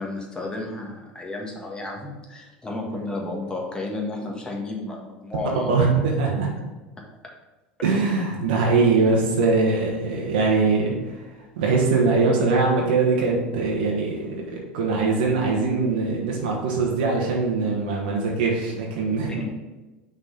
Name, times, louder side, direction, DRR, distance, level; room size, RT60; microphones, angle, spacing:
voice 1, 0.0-5.9 19.3-19.4, left 2 dB, 15° left, 0 dB, 1.6 m, -32 dB
voice 2, 5.7-6.5 7.8-11.2 11.5-19.4, right 4 dB, 75° right, -2 dB, 1.3 m, -22 dB
5.7 x 4.1 x 5.2 m, 1.2 s
hypercardioid pair, 85°, 5 cm